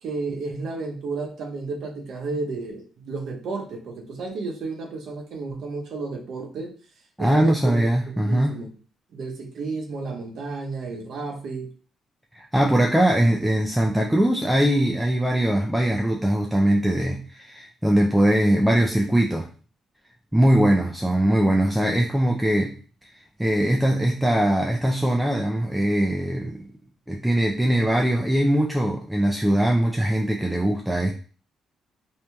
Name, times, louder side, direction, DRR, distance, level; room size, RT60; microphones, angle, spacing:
voice 1, 0.0-6.7 7.2-8.7 9.1-11.7, right 3 dB, 70° right, 2 dB, 0.6 m, -32 dB
voice 2, 7.2-8.6 12.3-19.5 20.3-22.7 23.4-26.7 27.1-31.1, right 1 dB, 5° right, 0 dB, 0.3 m, -21 dB
2.9 x 2.6 x 2.2 m, 0.39 s
cardioid pair, 90°, 0 cm